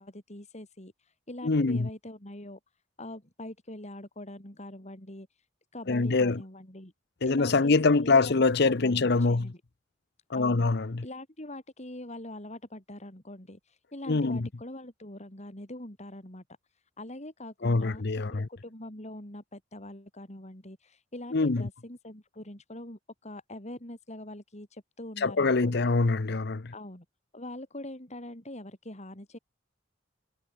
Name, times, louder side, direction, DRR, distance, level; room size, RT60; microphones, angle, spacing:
voice 1, 0.0-2.6 3.0-5.5 5.7-6.9 7.3-9.6 10.3-10.7 11.0-16.4 17.0-18.0 18.3-25.9 26.7-27.1 27.3-29.4, left 1 dB, 40° left, 5.4 m, -43 dB
voice 2, 1.4-1.9 5.9-6.4 7.2-9.5 10.3-11.0 14.1-14.5 17.6-18.5 21.3-21.7 25.2-26.7, left 3 dB, 60° left, 0.8 m, -24 dB
head